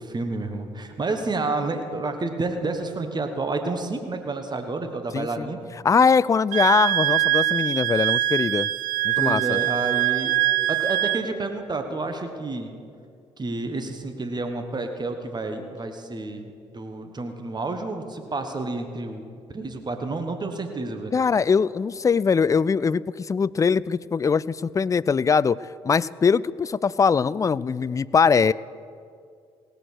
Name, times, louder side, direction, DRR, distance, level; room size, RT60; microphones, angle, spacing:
voice 1, 0.0-5.6 9.2-10.3 10.7-12.7 13.4-19.2 19.5-21.1, right 3 dB, 30° right, 6 dB, 1.4 m, -30 dB
voice 2, 5.1-5.5 5.8-8.7 9.0-9.6 21.1-28.5, left 5 dB, 25° left, 20 dB, 0.3 m, -22 dB
Wind instrument woodwind instrument, 6.5-11.3, right 15 dB, 70° right, 0.5 m, -23 dB
17.5 x 7.9 x 6.4 m, 2.3 s
hypercardioid pair, 50°, 14 cm